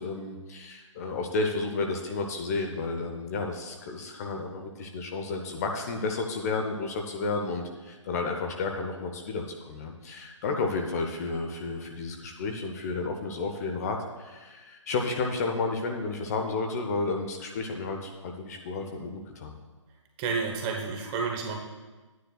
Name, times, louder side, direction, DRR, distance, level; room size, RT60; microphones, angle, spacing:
voice 1, 0.0-19.5, left 3 dB, 30° left, 3 dB, 0.7 m, -32 dB
voice 2, 20.2-21.6, right 5 dB, 20° right, 1 dB, 0.9 m, -30 dB
11.5 x 9.3 x 2.3 m, 1.3 s
hypercardioid pair, 150°, 17 cm